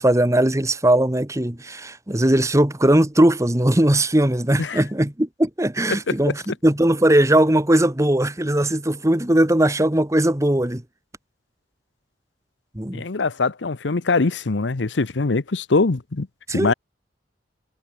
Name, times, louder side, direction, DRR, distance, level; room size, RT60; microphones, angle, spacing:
voice 1, 0.0-10.8 12.7-13.0 16.5-16.7, right 1 dB, 15° right, 1.4 m, -19 dB
voice 2, 12.9-16.3 16.5-16.7, left 3 dB, 90° left, 0.9 m, -22 dB
head